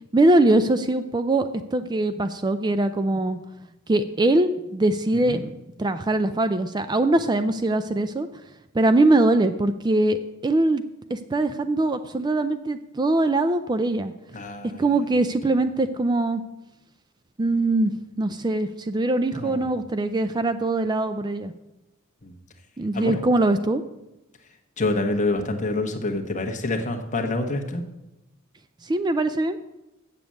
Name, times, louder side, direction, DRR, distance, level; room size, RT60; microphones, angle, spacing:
voice 1, 0.1-3.4 3.9-5.5 5.8-8.3 8.7-10.2 10.4-10.8 11.1-14.1 14.8-16.4 17.4-17.9 18.2-21.5 22.8-23.8 28.8-29.6, right 2 dB, 20° right, 10 dB, 0.4 m, -22 dB
voice 2, 14.3-14.8 19.3-19.6 22.2-22.3 22.9-23.1 24.8-27.8, left 2 dB, 35° left, 2 dB, 1.2 m, -27 dB
7.5 x 7.1 x 8.3 m, 0.96 s
head